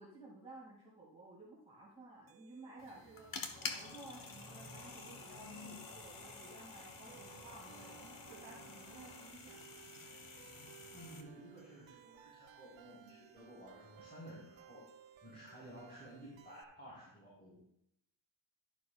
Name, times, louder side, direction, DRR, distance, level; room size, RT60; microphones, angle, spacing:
voice 1, 0.0-9.7, right 2 dB, 15° right, -6 dB, 2.3 m, -55 dB
sound 1, 2.3-16.6, right 11 dB, 80° right, 0.9 m, -61 dB
sound 2, 2.8-11.2, left 4 dB, 45° left, 1.3 m, -49 dB
sound 3, 3.5-9.3, left 2 dB, 65° left, 4.4 m, -57 dB
voice 2, 10.9-14.9 15.2-17.6, equal, 20° left, -9 dB, 4.3 m, -54 dB
11.5 x 11.5 x 2.4 m, 0.77 s
wide cardioid pair, 130°, 45 cm